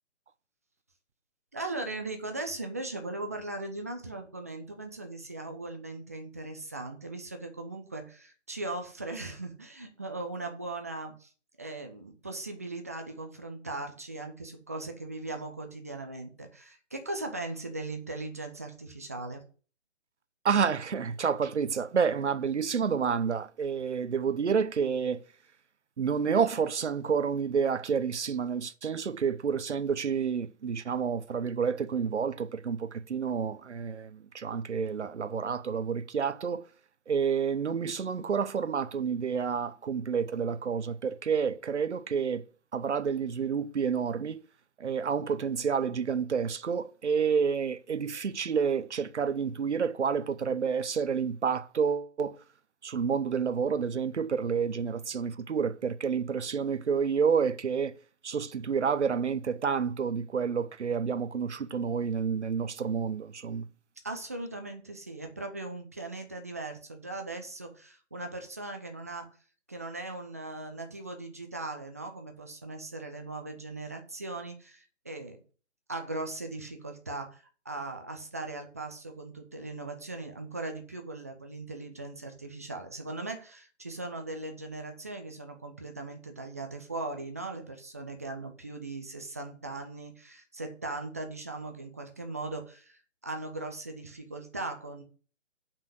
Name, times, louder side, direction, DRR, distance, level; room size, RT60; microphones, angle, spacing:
voice 1, 1.5-11.3 11.6-19.4 64.0-69.3 69.7-75.4 75.9-95.0, right 2 dB, 15° right, 0.5 m, -39 dB
voice 2, 20.4-25.2 26.0-36.6 37.1-42.4 42.7-44.4 44.8-52.4 52.8-57.9 58.2-63.6, right 6 dB, 65° right, 0.9 m, -29 dB
7.3 x 5.8 x 6.2 m
figure-of-eight pair, 140°, 37 cm